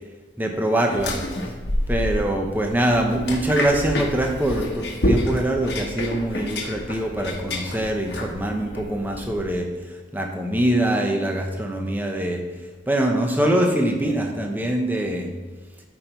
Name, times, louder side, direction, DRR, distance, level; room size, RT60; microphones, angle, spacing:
voice 1, 0.4-1.2 1.9-12.4 12.9-15.3, right 1 dB, 10° right, 2 dB, 0.8 m, -23 dB
sound 1, 0.9-9.5, left 1 dB, 70° left, 1.2 m, -28 dB
13.0 x 5.2 x 3.0 m, 1.2 s
head